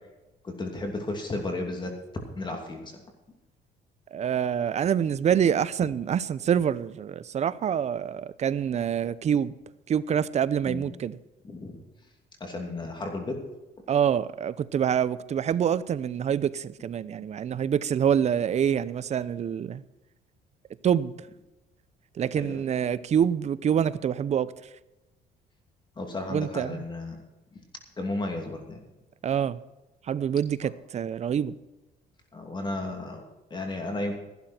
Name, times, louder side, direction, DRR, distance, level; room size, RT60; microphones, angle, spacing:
voice 1, 0.4-1.9 2.4-2.9 10.7-10.9 11.4-11.8 12.4-13.4 22.4-22.6 26.0-27.2 27.5-27.6 28.0-28.8 32.3-33.2 33.5-34.2, left 2 dB, 25° left, 2.7 m, -33 dB
voice 2, 4.1-9.5 9.9-11.2 13.9-19.8 20.8-21.1 22.2-24.5 26.3-26.8 29.2-29.6 30.1-31.5, right 8 dB, 40° right, 0.7 m, -26 dB
14.5 x 12.0 x 4.4 m
cardioid pair, 110°, 17 cm